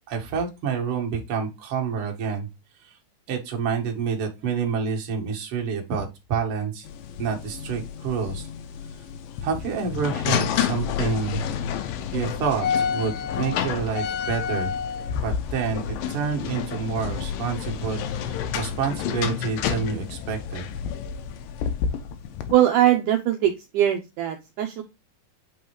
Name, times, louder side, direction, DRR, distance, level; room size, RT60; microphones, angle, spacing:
voice 1, 0.0-2.5 3.3-6.9 7.2-8.5 9.4-11.4 12.1-14.8 15.1-20.6, right 6 dB, 50° right, 2 dB, 1.9 m, -28 dB
sound 1, 6.8-22.5, left 8 dB, 80° left, 2.5 m, -29 dB
voice 2, 22.5-24.8, right 12 dB, 75° right, 5 dB, 2.0 m, -21 dB
8.4 x 3.9 x 3.1 m, 0.24 s
omnidirectional pair, 4.2 m